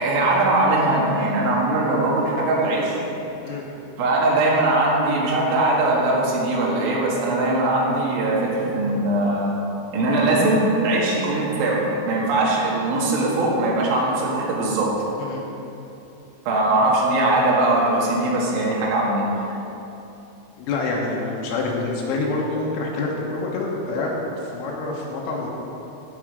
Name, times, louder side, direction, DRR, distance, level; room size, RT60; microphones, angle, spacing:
voice 1, 0.0-3.0 4.0-9.5 9.9-14.9 16.5-19.3, right 2 dB, 70° right, -4 dB, 4.0 m, -21 dB
voice 2, 20.6-24.1 24.4-25.5, left 3 dB, 85° left, -3 dB, 3.7 m, -26 dB
15.5 x 6.4 x 4.9 m, 3.0 s
omnidirectional pair, 5.8 m